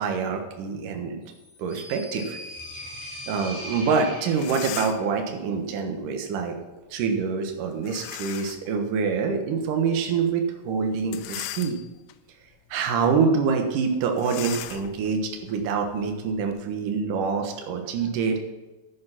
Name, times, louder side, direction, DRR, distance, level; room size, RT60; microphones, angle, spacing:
voice 1, 0.0-1.3 1.6-2.4 2.7-6.6 6.9-11.8 12.7-18.4, right 5 dB, 65° right, 4 dB, 2.6 m, -26 dB
sound 1, 1.3-5.1, equal, 5° left, 3.6 m, -40 dB
sound 2, 4.3-5.2 7.8-8.7 9.2-9.3 11.0-12.1 12.7-12.9 13.2-13.3 14.2-16.6, left 14 dB, 85° left, 1.9 m, -38 dB
10.5 x 8.1 x 5.7 m, 1.1 s
omnidirectional pair, 4.6 m